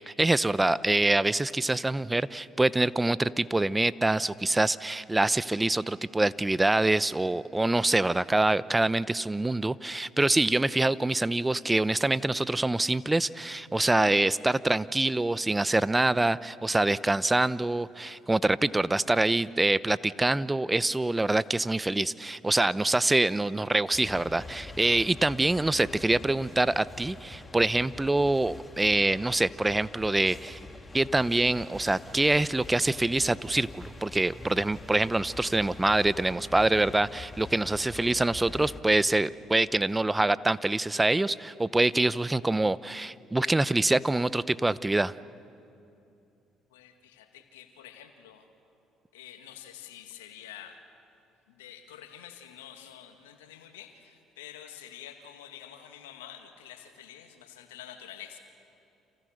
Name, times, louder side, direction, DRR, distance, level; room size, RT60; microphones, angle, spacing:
voice 1, 0.1-30.6 30.9-45.1, right 2 dB, 15° right, 18 dB, 0.8 m, -25 dB
sound 1, 23.9-38.8, left 3 dB, 20° left, 2.7 m, -45 dB
voice 2, 46.7-48.5 49.1-50.8 51.5-58.4, left 10 dB, 90° left, 6 dB, 2.1 m, -48 dB
30.0 x 27.5 x 6.6 m, 2.7 s
hypercardioid pair, 60°, 0 cm